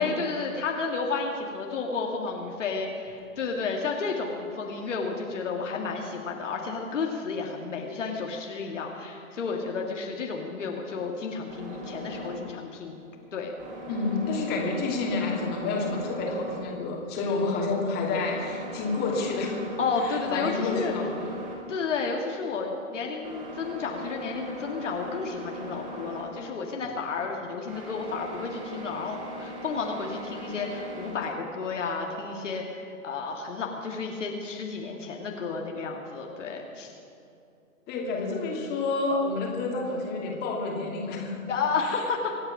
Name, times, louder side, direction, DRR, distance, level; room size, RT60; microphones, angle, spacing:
voice 1, 0.0-13.0 13.3-13.5 19.8-20.9 21.7-36.9 41.5-42.3, left 4 dB, 60° left, 1 dB, 2.1 m, -32 dB
sound 1, 11.5-31.1, equal, 20° right, 4.2 m, -41 dB
voice 2, 13.9-19.6 19.9-21.3 37.9-41.4 41.8-42.0, left 3 dB, 25° left, -1 dB, 2.8 m, -29 dB
25.0 x 8.8 x 6.0 m, 2.7 s
figure-of-eight pair, 120°, 41 cm